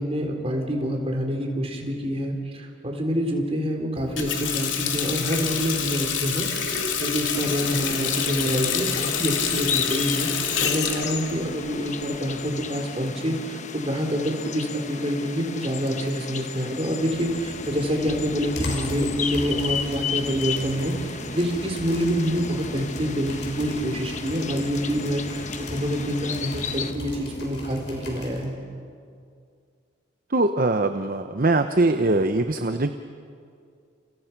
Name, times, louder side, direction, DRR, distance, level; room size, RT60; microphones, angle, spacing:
voice 1, 0.0-10.3 10.6-28.5, equal, 30° right, 2 dB, 3.9 m, -27 dB
Water tap faucet, 4.0-12.4, left 7 dB, 85° left, 2.9 m, -27 dB
sound 1, 7.3-26.9, left 6 dB, 40° left, 1.1 m, -34 dB
sound 2, 17.1-28.4, equal, 65° left, 6.4 m, -37 dB
voice 2, 30.3-32.9, right 2 dB, 50° right, 8 dB, 0.9 m, -22 dB
29.5 x 29.5 x 6.0 m, 2.3 s
head